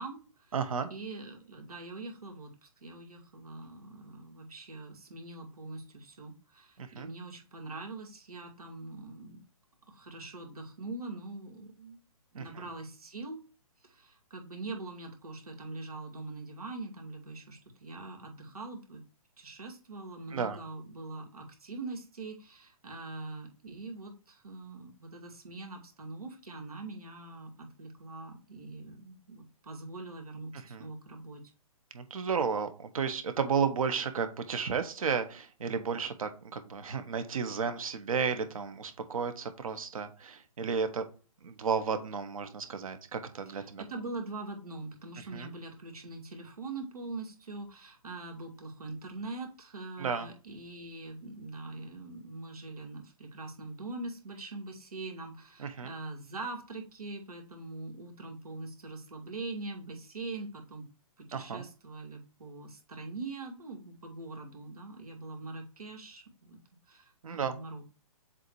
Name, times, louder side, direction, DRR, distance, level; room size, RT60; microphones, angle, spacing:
voice 1, 0.0-0.5 0.9-9.4 9.9-12.0 12.3-13.4 13.8-19.0 19.4-31.4 43.5-60.9 61.2-66.6 66.9-67.8, right 3 dB, 90° right, 2 dB, 2.3 m, -43 dB
voice 2, 0.5-0.9 6.8-7.1 12.4-12.5 20.3-20.6 30.7-30.8 31.9-41.0 41.4-43.8 45.3-45.5 50.0-50.3 55.6-55.9 61.3-61.7 67.2-67.6, right 6 dB, 70° right, 9 dB, 1.3 m, -33 dB
7.5 x 2.8 x 4.7 m, 0.36 s
hypercardioid pair, 145°, 19 cm